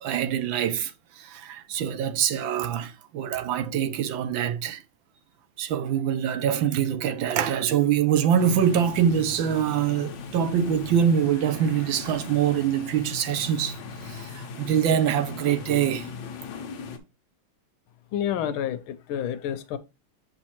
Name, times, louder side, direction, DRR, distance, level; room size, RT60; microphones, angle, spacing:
voice 1, 0.0-4.8 5.6-16.1, right 9 dB, 75° right, 1.5 m, -24 dB
sound 1, 8.4-17.0, left 5 dB, 65° left, 1.5 m, -38 dB
voice 2, 18.1-19.8, left 9 dB, 85° left, 1.5 m, -29 dB
7.1 x 5.3 x 2.9 m
omnidirectional pair, 2.3 m